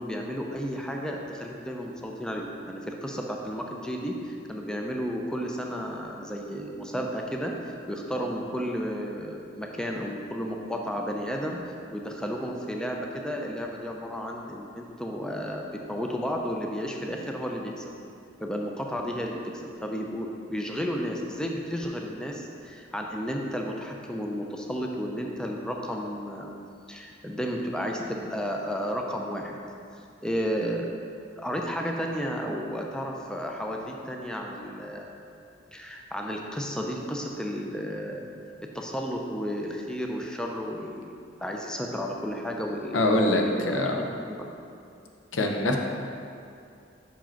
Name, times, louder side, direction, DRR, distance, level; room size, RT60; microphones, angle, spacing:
voice 1, 0.0-15.6 15.9-17.9 18.4-26.5 26.9-29.6 30.2-30.9 31.4-35.1 35.7-38.2 38.7-44.5, equal, 5° left, 0 dB, 0.4 m, -32 dB
voice 2, 42.9-44.0 45.3-45.8, left 2 dB, 85° left, 2 dB, 0.7 m, -24 dB
5.7 x 4.8 x 4.4 m, 2.5 s
head